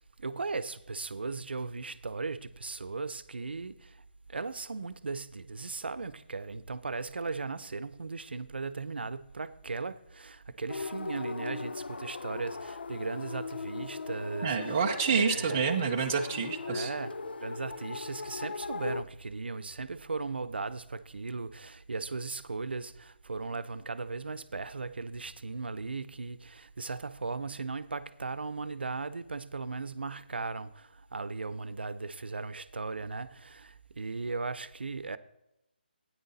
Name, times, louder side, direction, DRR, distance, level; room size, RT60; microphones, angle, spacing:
voice 1, 0.0-4.0 4.3-15.6 16.6-35.2, right 4 dB, 75° right, 0.7 m, -37 dB
sound 1, 10.7-19.0, left 4 dB, 75° left, 0.5 m, -39 dB
voice 2, 14.4-16.9, right 5 dB, 15° right, 0.5 m, -28 dB
13.0 x 9.5 x 4.1 m
hypercardioid pair, 180°, 6 cm